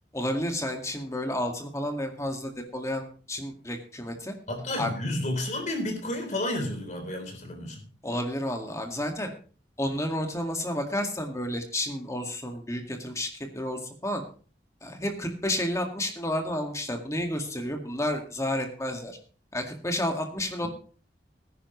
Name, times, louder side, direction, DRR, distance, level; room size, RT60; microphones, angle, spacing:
voice 1, 0.1-4.3 4.8-4.9 8.0-9.3 9.8-14.2 14.8-19.2 19.5-20.7, left 1 dB, 15° left, 4 dB, 2.0 m, -31 dB
voice 2, 4.5-7.8, left 1 dB, 40° left, 3 dB, 3.8 m, -31 dB
19.5 x 10.0 x 3.2 m, 0.38 s
head